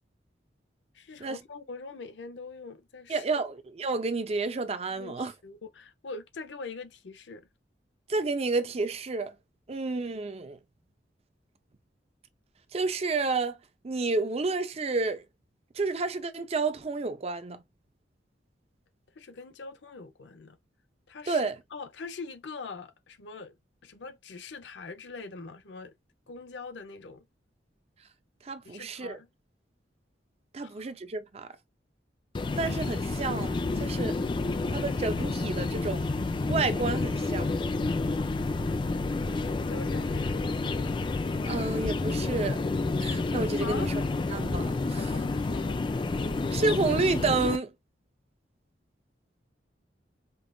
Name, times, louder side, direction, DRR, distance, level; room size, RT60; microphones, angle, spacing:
voice 1, 0.9-3.2 4.9-7.5 19.1-20.6 21.1-21.4 21.7-23.6 23.8-25.9 26.3-27.3 28.6-29.3 30.6-30.9 39.5-40.5 43.6-43.9 45.0-45.8, left 4 dB, 80° left, 0.6 m, -43 dB
voice 2, 3.1-5.3 8.1-9.3 9.7-10.6 12.7-13.6 13.8-15.2 15.7-17.6 21.3-21.6 28.4-29.2 30.5-31.5 32.6-34.2 34.7-36.1 36.5-37.6 41.4-42.6 43.0-43.9 44.3-45.1 46.5-47.7, right 3 dB, 35° right, 0.5 m, -30 dB
sound 1, 32.3-47.6, left 3 dB, 25° left, 0.3 m, -29 dB
5.3 x 2.4 x 2.2 m
head